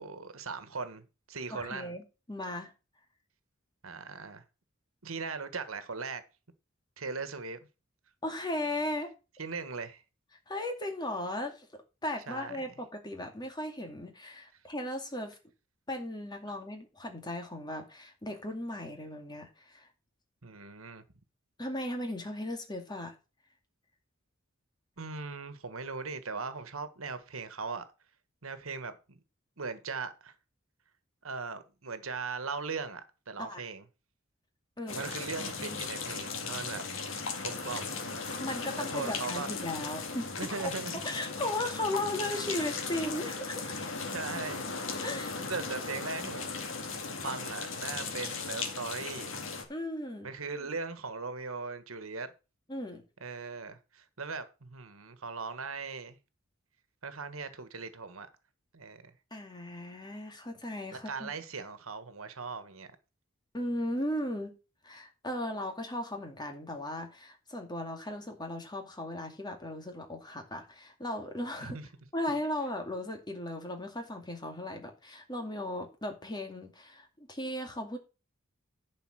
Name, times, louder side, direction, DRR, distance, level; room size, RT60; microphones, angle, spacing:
voice 1, 0.0-1.9 3.8-4.4 5.0-6.2 7.0-7.6 9.4-10.0 12.3-12.7 20.4-21.0 25.0-27.8 28.4-29.2 29.6-30.3 31.2-33.0 33.3-33.8 34.9-36.8 37.4-38.0 38.8-39.5 40.4-41.0 44.0-44.6 45.4-46.7 47.2-49.4 50.2-52.3 53.2-56.2 57.0-58.3 58.7-59.1 60.9-62.9 71.6-71.9, right 4 dB, 90° right, 1.4 m, -39 dB
voice 2, 1.5-2.7 8.2-9.1 10.5-11.7 12.0-15.4 15.9-19.9 21.6-23.1 33.4-33.6 34.8-35.0 35.4-35.8 38.4-40.7 41.0-43.8 45.0-45.3 49.7-50.3 52.7-53.0 59.3-61.3 63.5-64.6 64.8-71.8 72.1-78.0, left 1 dB, 20° left, 2.3 m, -37 dB
sound 1, 34.9-49.6, left 4 dB, 65° left, 2.2 m, -37 dB
11.0 x 5.3 x 6.3 m
head